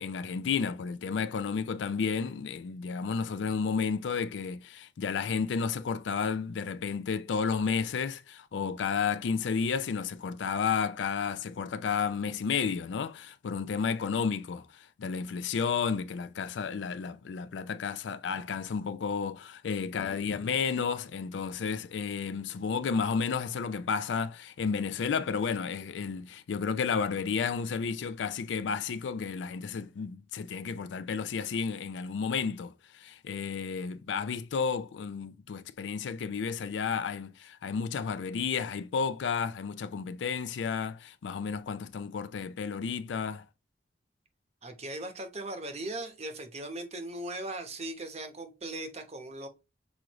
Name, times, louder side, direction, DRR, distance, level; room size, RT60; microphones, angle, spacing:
voice 1, 0.0-43.4, left 6 dB, 80° left, 0.4 m, -32 dB
voice 2, 44.6-49.5, right 1 dB, 35° right, 0.9 m, -38 dB
6.1 x 2.5 x 3.0 m
head